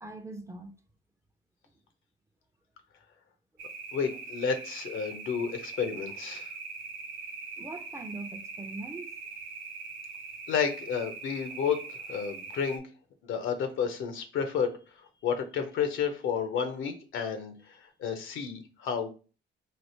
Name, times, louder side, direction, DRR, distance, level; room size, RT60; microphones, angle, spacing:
voice 1, 0.0-0.7 7.6-9.2, right 2 dB, 15° right, 0.5 m, -41 dB
sound 1, 3.6-12.8, right 4 dB, 75° right, 1.0 m, -42 dB
voice 2, 3.9-6.5 10.5-11.8 12.1-12.8 13.2-14.8 15.2-19.1, left 7 dB, 80° left, 0.8 m, -31 dB
3.3 x 2.5 x 4.2 m
cardioid pair, 90°, 20 cm